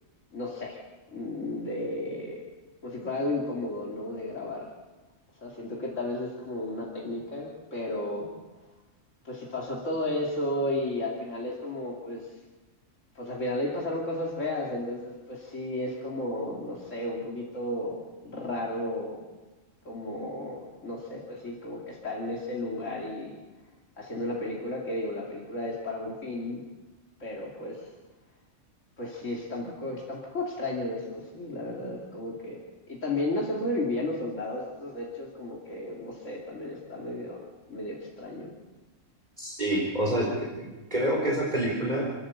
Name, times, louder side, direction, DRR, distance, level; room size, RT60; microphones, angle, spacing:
voice 1, 0.3-0.8 1.1-2.4 2.8-4.7 5.4-8.3 9.2-12.4 13.1-18.0 18.2-19.2 19.8-23.4 24.0-26.6 27.2-27.9 29.0-32.6 32.9-38.5, left 1 dB, 75° left, -3 dB, 3.2 m, -33 dB
voice 2, 39.4-40.5 40.9-42.1, right 1 dB, 35° right, -3 dB, 4.4 m, -27 dB
29.0 x 13.0 x 7.2 m, 1.2 s
omnidirectional pair, 1.3 m